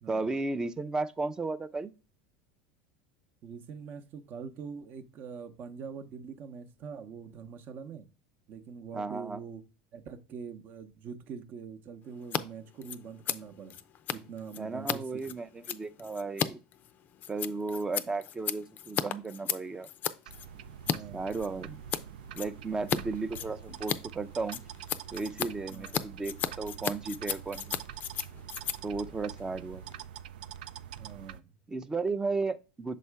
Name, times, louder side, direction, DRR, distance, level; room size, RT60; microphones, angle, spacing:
voice 1, 0.1-1.9 8.9-9.4 14.6-16.6 17.3-19.9 21.1-21.8 22.4-24.6 25.1-27.8 28.8-29.8 31.7-33.0, right 3 dB, 15° right, 0.5 m, -34 dB
voice 2, 3.4-8.1 8.5-9.6 9.9-13.8 14.1-15.0 15.7-15.8 20.8-21.4 25.7-26.1 31.0-31.5, right 6 dB, 45° right, 0.8 m, -44 dB
Scissors, 12.2-12.4 12.7-21.0 21.3-22.0 22.3-23.0 23.3-30.1, left 9 dB, 40° left, 0.4 m, -35 dB
sound 1, 20.3-31.4, right 9 dB, 85° right, 0.3 m, -45 dB
6.5 x 4.2 x 3.4 m
supercardioid pair, 115°, 5 cm